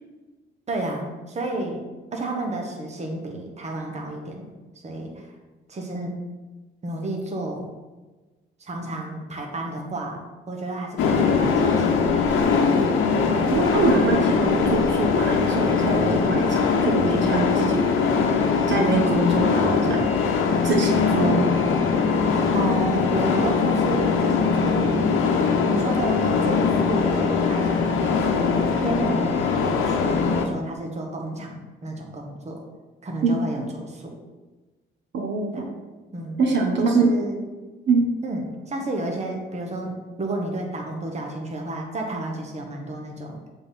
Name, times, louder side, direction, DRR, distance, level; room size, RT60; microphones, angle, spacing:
voice 1, 0.7-1.8 2.1-4.5 4.8-5.3 5.7-6.2 6.8-7.7 8.6-11.9 18.8-19.3 21.1-21.6 22.5-25.1 25.6-32.6 33.0-34.1 35.5-35.6 36.1-36.4 36.9-37.4 38.2-43.4, right 2 dB, 35° right, 1 dB, 1.3 m, -31 dB
sound 1, 11.0-30.5, left 5 dB, 85° left, 0.8 m, -21 dB
voice 2, 13.0-17.9 18.7-20.1 20.6-21.5 33.2-33.3 35.1-35.5 36.4-37.0 37.9-38.0, right 3 dB, 65° right, 1 dB, 1.2 m, -24 dB
7.6 x 3.9 x 4.1 m, 1.2 s
cardioid pair, 90°, 20 cm